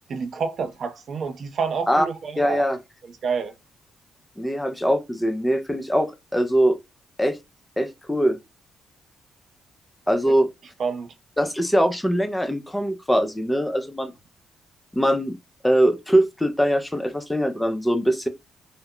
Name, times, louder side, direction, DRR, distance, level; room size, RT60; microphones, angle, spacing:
voice 1, 0.1-2.6 3.2-3.5 10.8-11.1, right 5 dB, 55° right, 0.5 m, -28 dB
voice 2, 2.4-2.8 4.4-6.8 7.2-7.4 7.8-8.4 10.1-10.5 11.4-14.1 14.9-15.4 15.6-18.3, equal, 5° left, 0.5 m, -22 dB
2.2 x 2.0 x 3.5 m
cardioid pair, 90°, 0 cm